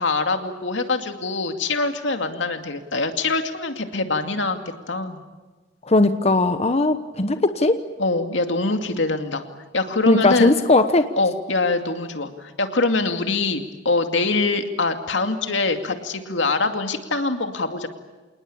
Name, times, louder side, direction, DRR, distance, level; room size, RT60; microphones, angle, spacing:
voice 1, 0.0-4.6 4.9-5.2 8.0-9.4 9.7-10.5 11.1-17.9, left 3 dB, 85° left, 6 dB, 2.4 m, -24 dB
voice 2, 5.9-7.8 10.1-11.1, left 2 dB, 35° left, 9 dB, 1.0 m, -18 dB
28.0 x 19.5 x 8.7 m, 1.3 s
head